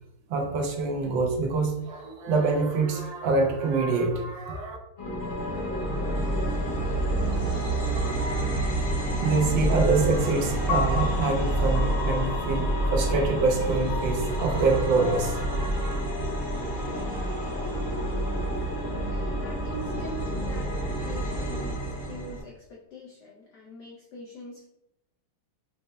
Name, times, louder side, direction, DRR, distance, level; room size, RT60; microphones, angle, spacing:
voice 1, 0.3-4.8 7.9-16.0, right 3 dB, 70° right, 2 dB, 1.3 m, -26 dB
sound 1, 5.0-22.4, right 1 dB, 35° left, 1.0 m, -28 dB
Piano, 10.7-16.9, left 7 dB, 90° left, 1.5 m, -36 dB
voice 2, 19.0-24.7, equal, 75° left, -2 dB, 1.0 m, -43 dB
5.3 x 2.0 x 3.3 m, 0.84 s
omnidirectional pair, 2.3 m